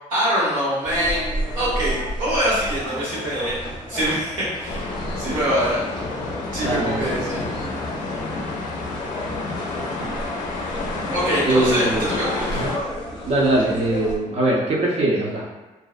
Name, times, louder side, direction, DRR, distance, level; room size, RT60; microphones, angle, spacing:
voice 1, 0.1-1.2 1.6-3.6 3.9-5.8 6.5-7.4 11.1-12.6, equal, 85° right, -8 dB, 1.3 m, -24 dB
sound 1, 0.8-14.2, equal, 35° left, 0.6 m, -32 dB
sound 2, 4.6-12.8, left 3 dB, 85° left, 0.4 m, -30 dB
voice 2, 6.6-7.1 11.4-12.8 13.2-15.4, right 1 dB, 50° right, -4 dB, 0.7 m, -22 dB
2.5 x 2.0 x 2.4 m, 1.2 s
cardioid pair, 125°, 13 cm